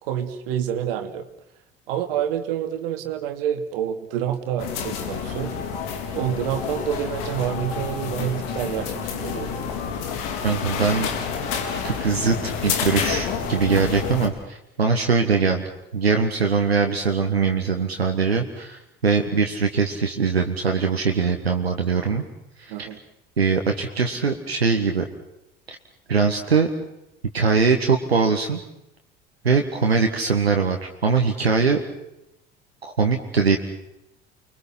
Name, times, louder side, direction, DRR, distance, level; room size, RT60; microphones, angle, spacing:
voice 1, 0.0-1.3 1.9-5.6 6.1-9.5 22.7-23.0, right 10 dB, 65° right, 8 dB, 2.6 m, -28 dB
sound 1, 4.6-14.3, left 6 dB, 60° left, 4.3 m, -29 dB
voice 2, 10.4-11.1 11.8-15.7 15.9-22.2 22.6-22.9 23.4-25.1 25.7-25.8 26.1-26.7 27.3-28.6 29.4-31.8 32.8-33.6, right 5 dB, 85° right, 4 dB, 1.8 m, -22 dB
29.5 x 23.0 x 6.0 m, 0.86 s
figure-of-eight pair, 60°, 30 cm